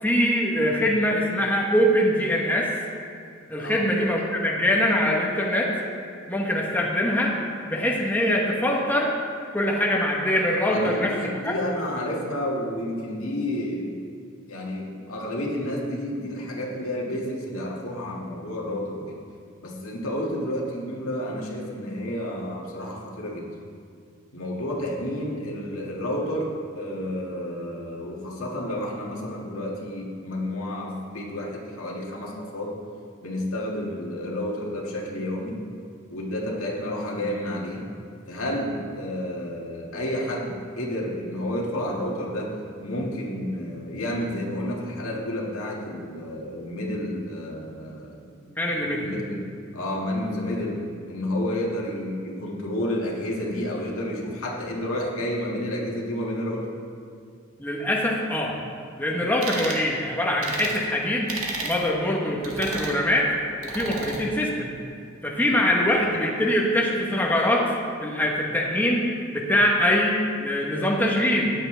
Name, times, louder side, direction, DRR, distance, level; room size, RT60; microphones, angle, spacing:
voice 1, 0.0-2.7 3.5-5.7 6.3-7.4 7.7-9.1 9.5-11.1 11.4-11.5 48.6-49.1 57.6-58.5 59.0-61.3 61.6-63.3 63.6-64.7 65.2-67.8 68.0-69.0 69.3-71.5, left 1 dB, 10° left, -2 dB, 1.1 m, -23 dB
voice 2, 10.7-14.0 14.5-19.2 19.6-23.6 24.3-32.8 33.2-35.6 36.1-37.8 38.3-48.3 48.7-49.5 49.7-50.8 51.1-56.7 59.5-59.6 65.5-65.8, left 1 dB, 85° left, -3 dB, 2.1 m, -30 dB
sound 1, 59.4-59.8 60.4-60.8 61.3-61.8 62.4-63.0 63.6-64.2, right 3 dB, 85° right, 1.7 m, -32 dB
13.5 x 9.8 x 3.4 m, 2.3 s
head